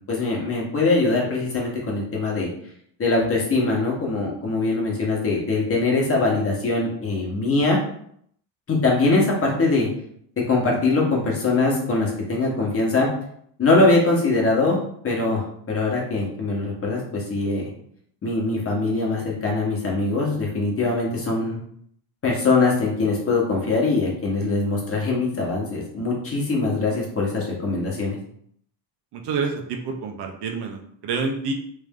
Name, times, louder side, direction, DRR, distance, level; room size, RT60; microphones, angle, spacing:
voice 1, 0.1-2.5 3.0-7.8 8.7-9.9 10.5-13.1 13.6-14.8 15.0-17.7 18.2-21.6 22.2-28.2, left 3 dB, 30° left, -2 dB, 1.1 m, -22 dB
voice 2, 29.1-31.5, right 4 dB, 60° right, 3 dB, 0.7 m, -28 dB
3.3 x 2.6 x 3.6 m, 0.66 s
cardioid pair, 130°, 46 cm